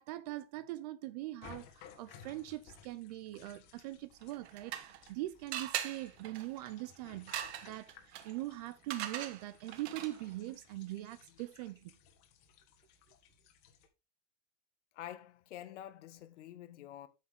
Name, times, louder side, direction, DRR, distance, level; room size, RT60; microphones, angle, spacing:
voice 1, 0.0-11.9, right 16 dB, 35° right, 0.5 m, -42 dB
sound 1, 1.4-13.9, left 7 dB, 40° left, 1.5 m, -59 dB
sound 2, 4.2-5.1 5.5-10.3, right 11 dB, 55° right, 1.3 m, -42 dB
voice 2, 14.9-17.1, left 12 dB, 65° left, 1.3 m, -48 dB
8.5 x 7.2 x 3.6 m
supercardioid pair, 155°, 38 cm